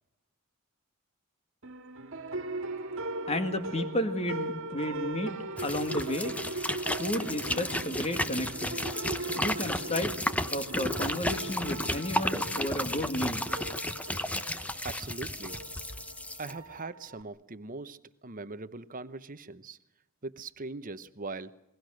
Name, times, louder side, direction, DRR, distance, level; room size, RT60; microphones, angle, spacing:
sound 1, 1.6-17.2, right 2 dB, 60° right, 1.9 m, -39 dB
voice 1, 3.3-5.3 5.6-6.4 7.0-8.8 9.3-10.1 10.5-13.5, left 1 dB, 30° left, 7 dB, 2.2 m, -32 dB
sound 2, 5.6-16.5, left 1 dB, 5° left, 1.0 m, -33 dB
voice 2, 14.8-15.6 16.4-19.8 20.2-21.5, right 3 dB, 40° right, 12 dB, 1.0 m, -41 dB
28.5 x 21.5 x 6.5 m, 0.83 s
head